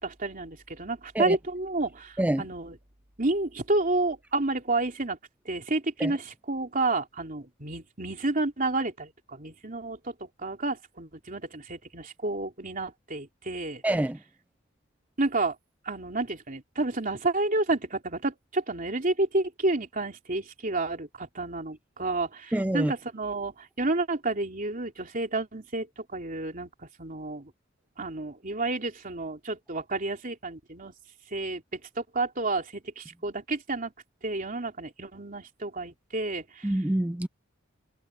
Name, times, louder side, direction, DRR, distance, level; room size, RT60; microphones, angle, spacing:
voice 1, 0.0-2.7 3.2-5.2 5.4-13.8 15.2-15.6 15.8-27.5 28.0-30.9 31.3-33.9 34.2-36.7, right 2 dB, 40° right, 3.3 m, -30 dB
voice 2, 13.8-14.2 22.5-22.9 36.6-37.3, right 1 dB, 5° right, 0.4 m, -26 dB
head